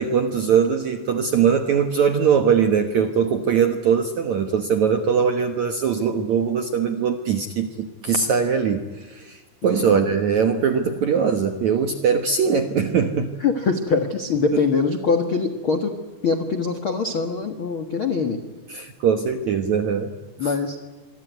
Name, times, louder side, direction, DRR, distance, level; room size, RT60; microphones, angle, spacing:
voice 1, 0.0-13.4 18.7-20.1 20.4-20.5, right 6 dB, 70° right, 7 dB, 1.8 m, -21 dB
voice 2, 9.6-10.1 13.4-15.9 16.2-18.4 20.4-20.8, left 5 dB, 80° left, 7 dB, 1.1 m, -23 dB
26.5 x 23.5 x 9.4 m, 1.3 s
omnidirectional pair, 5.2 m